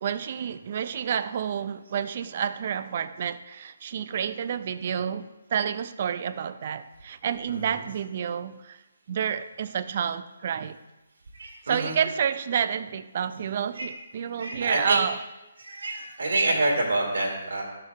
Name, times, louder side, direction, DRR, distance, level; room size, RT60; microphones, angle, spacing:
voice 1, 0.0-8.8 9.1-10.8 11.7-15.2, right 8 dB, 45° right, 0.4 m, -29 dB
voice 2, 11.4-12.0 13.7-13.8 14.4-15.0 15.6-17.6, right 2 dB, 70° right, 2.0 m, -27 dB
12.5 x 6.5 x 2.4 m
figure-of-eight pair, 140°, 0 cm